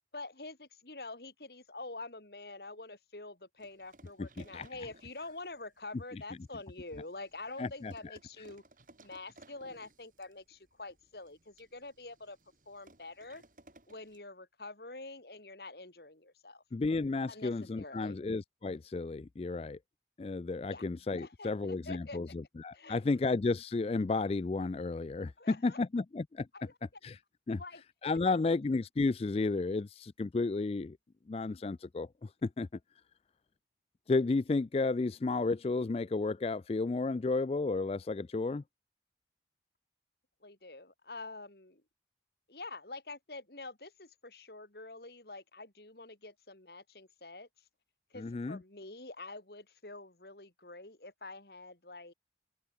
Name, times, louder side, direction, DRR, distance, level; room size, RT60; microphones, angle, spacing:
voice 1, 0.1-8.6 9.0-12.4 12.7-13.4 13.9-16.6 17.3-18.2 20.7-20.8 21.2-22.2 22.7-23.0 25.4-25.8 26.5-26.8 27.5-27.8 40.4-41.8 42.5-47.5 48.1-52.1, left 2 dB, 60° left, 3.0 m, -47 dB
sound 1, 3.6-14.2, right 2 dB, 45° right, 4.8 m, -62 dB
voice 2, 4.2-4.7 7.6-7.9 16.7-19.8 20.2-26.5 27.0-27.2 27.5-27.6 28.0-31.0 31.3-32.7 34.1-38.6 48.2-48.6, left 3 dB, 35° left, 0.3 m, -32 dB
open air
head